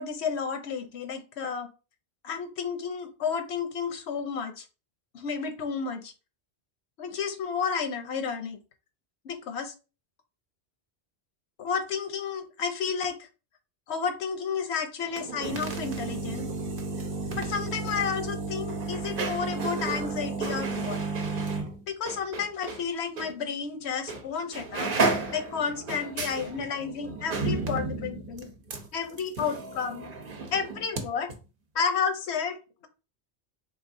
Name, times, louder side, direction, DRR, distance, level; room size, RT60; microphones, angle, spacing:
voice 1, 0.0-1.7 2.2-4.6 5.1-6.1 7.0-8.6 9.2-9.7 11.6-13.3 13.9-16.5 17.3-21.0 21.9-24.9 25.3-28.5 28.9-30.1 30.5-31.3 31.7-32.9, left 6 dB, 90° left, 8 dB, 1.0 m, -31 dB
sound 1, 15.1-22.8 23.2-23.3 24.1-24.3 24.5-31.0 31.3-31.4, right 3 dB, 60° right, 0.9 m, -32 dB
4.0 x 3.3 x 2.6 m, 0.32 s
omnidirectional pair, 1.1 m